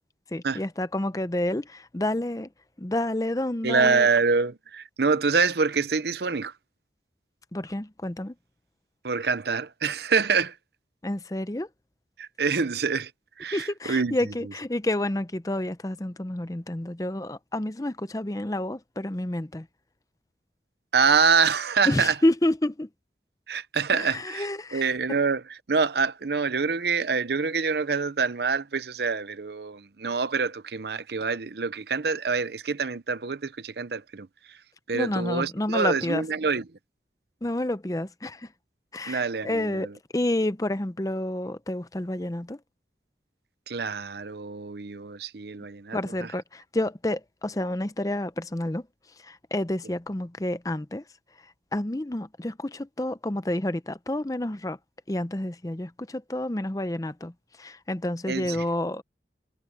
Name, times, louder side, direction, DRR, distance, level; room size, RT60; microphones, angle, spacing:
voice 1, 0.3-2.5 2.8-4.1 7.5-8.3 11.0-11.7 13.5-19.7 21.9-22.9 23.9-24.9 34.9-36.2 37.4-38.5 38.9-39.9 40.1-42.6 45.9-48.8 49.2-51.0 51.7-54.8 55.1-57.3 57.6-59.0, left 1 dB, 20° left, 0.6 m, -29 dB
voice 2, 3.6-6.5 9.0-10.6 12.2-13.1 13.4-14.1 14.4-14.5 20.9-22.1 23.5-24.5 24.7-34.6 34.9-36.6 39.1-39.9 43.7-46.3 58.3-58.6, right 5 dB, 65° right, 0.7 m, -26 dB
head